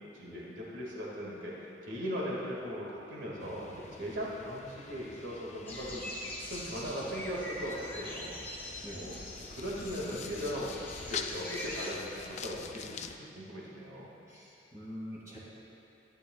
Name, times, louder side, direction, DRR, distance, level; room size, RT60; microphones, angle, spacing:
voice 1, 0.1-1.5 1.8-6.0 6.4-9.1 9.5-10.8 11.1-14.1, equal, 70° right, -5 dB, 2.0 m, -39 dB
sound 1, 3.4-13.2, left 6 dB, 35° left, 0.3 m, -46 dB
sound 2, 5.7-11.9, left 1 dB, 10° left, 0.9 m, -43 dB
voice 2, 6.6-7.1 8.8-9.2 14.3-15.4, equal, 15° right, -9 dB, 1.9 m, -46 dB
15.0 x 10.0 x 2.4 m, 2.8 s
head